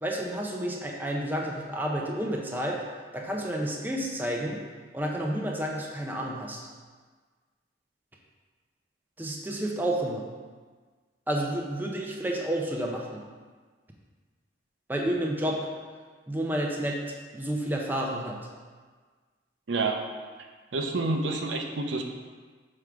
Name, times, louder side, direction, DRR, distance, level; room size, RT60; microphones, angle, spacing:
voice 1, 0.0-2.8 3.1-4.6 4.9-6.7 9.2-10.3 11.3-13.2 14.9-15.6 16.3-17.0 17.3-18.4, right 1 dB, 10° right, -1 dB, 0.6 m, -30 dB
voice 2, 20.7-22.0, right 3 dB, 80° right, 3 dB, 0.7 m, -28 dB
6.4 x 3.7 x 4.6 m, 1.5 s
head